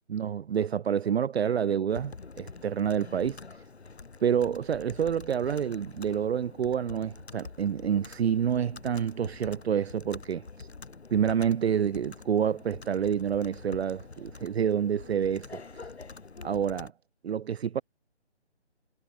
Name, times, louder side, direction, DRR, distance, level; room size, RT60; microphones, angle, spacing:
voice 1, 0.1-3.4 4.2-10.7 11.1-15.6 16.4-16.9 17.2-17.8, right 8 dB, 65° right, 0.5 m, -28 dB
Computer keyboard, 1.9-16.9, left 4 dB, 70° left, 7.4 m, -46 dB
figure-of-eight pair, 150°, 34 cm